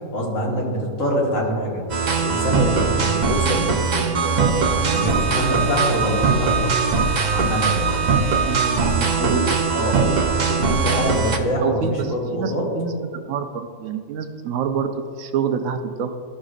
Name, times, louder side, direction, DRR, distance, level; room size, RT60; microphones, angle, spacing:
voice 1, 0.1-1.8 2.2-6.7 7.3-8.0 9.2-9.4 9.7-10.1 10.5-12.7, equal, 60° left, -3 dB, 1.9 m, -25 dB
sound 1, 1.9-11.4, right 5 dB, 55° right, 0.5 m, -21 dB
voice 2, 8.4-10.5 11.6-16.2, right 6 dB, 70° right, 7 dB, 0.9 m, -27 dB
14.0 x 6.4 x 2.4 m, 2.2 s
omnidirectional pair, 1.5 m